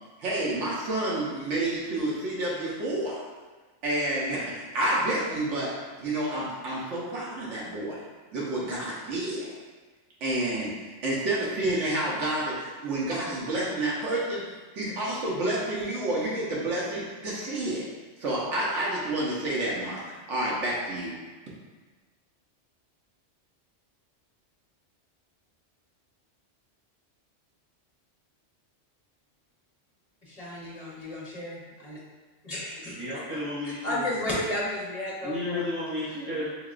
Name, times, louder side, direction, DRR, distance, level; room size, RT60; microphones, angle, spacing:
voice 1, 0.2-3.2 3.8-5.7 6.0-8.0 8.3-9.5 10.2-14.4 14.7-17.8 18.2-20.0 20.3-21.1, right 1 dB, 85° right, -6 dB, 1.2 m, -29 dB
voice 2, 30.2-32.0 32.4-33.0 33.8-35.7, left 1 dB, 35° left, -5 dB, 0.9 m, -33 dB
voice 3, 32.9-34.1 35.2-36.6, left 1 dB, 20° right, -11 dB, 0.4 m, -32 dB
3.8 x 3.4 x 2.4 m, 1.3 s
omnidirectional pair, 1.2 m